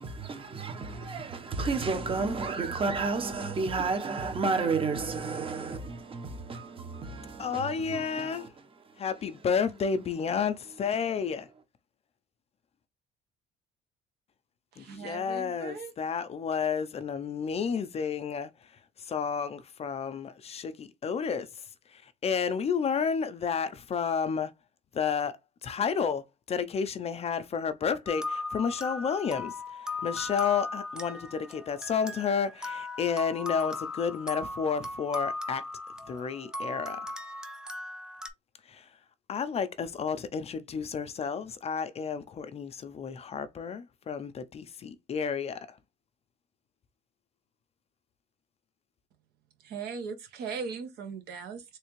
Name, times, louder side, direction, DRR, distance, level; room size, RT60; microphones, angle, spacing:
voice 1, 0.0-9.1 11.0-11.1, right 4 dB, 30° right, 0.9 m, -32 dB
voice 2, 7.4-8.5 9.0-11.5 14.8-18.7 19.0-21.7 21.9-24.5 24.9-35.7 36.1-37.1 38.7-38.9 39.3-45.8, left 6 dB, 40° left, 0.5 m, -31 dB
voice 3, 14.7-15.9 49.6-51.8, right 6 dB, 75° right, 1.1 m, -39 dB
sound 1, 28.1-38.3, left 2 dB, 5° right, 0.6 m, -37 dB
3.4 x 3.2 x 3.0 m
cardioid pair, 110°, 17 cm